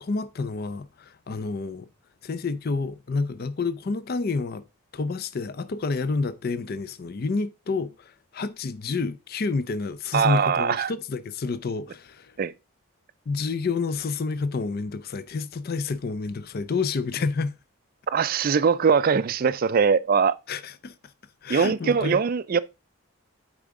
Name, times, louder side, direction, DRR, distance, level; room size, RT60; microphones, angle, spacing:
voice 1, 0.0-1.9 2.2-4.6 4.9-12.3 13.3-17.5 20.5-20.9 21.4-22.2, left 4 dB, 45° left, 0.4 m, -29 dB
voice 2, 10.1-10.9 12.4-12.5 18.1-20.4 21.5-22.6, right 6 dB, 40° right, 0.3 m, -21 dB
8.5 x 4.9 x 3.7 m
head